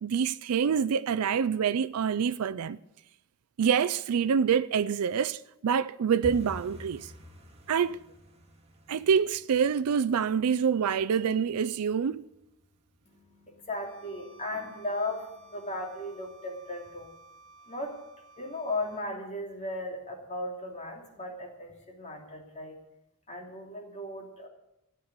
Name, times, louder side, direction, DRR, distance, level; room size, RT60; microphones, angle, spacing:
voice 1, 0.0-2.8 3.6-7.1 7.7-8.0 8.9-12.2, right 7 dB, 80° right, 0.4 m, -26 dB
sound 1, 6.2-16.9 17.2-17.9 18.2-18.5 18.7-19.1 19.4-19.5 20.0-20.5 20.9-21.0 21.5-21.6, equal, 25° right, 2.2 m, -50 dB
voice 2, 13.0-17.1 17.7-18.0 18.4-22.8 23.3-24.5, left 1 dB, 30° left, 2.9 m, -36 dB
Bowed string instrument, 13.7-19.1, right 2 dB, 60° right, 2.0 m, -55 dB
13.5 x 9.5 x 8.1 m
head